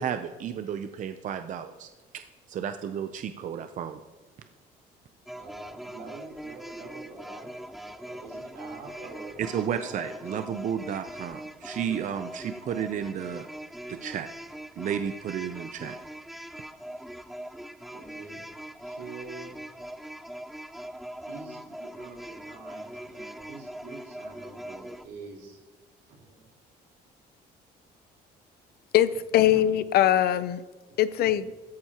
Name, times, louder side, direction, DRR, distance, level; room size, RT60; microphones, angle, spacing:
voice 1, 0.0-1.9 2.1-4.0 9.4-13.5 13.9-14.3 14.8-16.0, right 8 dB, 50° right, 9 dB, 0.6 m, -32 dB
sound 1, 5.3-25.1, right 1 dB, ahead, 0.4 m, -42 dB
voice 2, 5.3-7.5 7.9-10.5 14.7-14.9 17.9-18.4 18.8-19.6 20.8-21.0 21.3-25.6 26.1-26.5 29.3-29.6, right 3 dB, 90° right, -3 dB, 4.1 m, -45 dB
voice 3, 28.9-30.6 31.0-31.4, left 12 dB, 65° left, 15 dB, 0.6 m, -22 dB
15.5 x 13.5 x 2.9 m, 1.3 s
cardioid pair, 110°, 17 cm